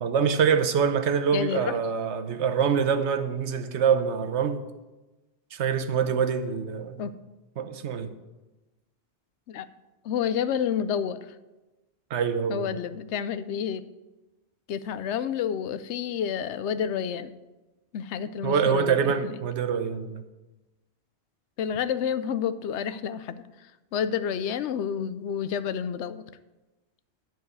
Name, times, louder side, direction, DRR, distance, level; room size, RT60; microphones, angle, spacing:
voice 1, 0.0-4.6 5.5-7.1 7.6-8.1 12.1-12.8 18.4-20.2, right 7 dB, 85° right, 9 dB, 1.1 m, -25 dB
voice 2, 1.3-1.8 7.0-7.1 9.5-9.7 10.0-11.3 12.5-13.8 14.7-17.3 17.9-19.1 21.6-23.5 23.9-26.2, left 8 dB, 90° left, 14 dB, 0.9 m, -29 dB
11.0 x 4.7 x 7.9 m, 1.1 s
omnidirectional pair, 1.1 m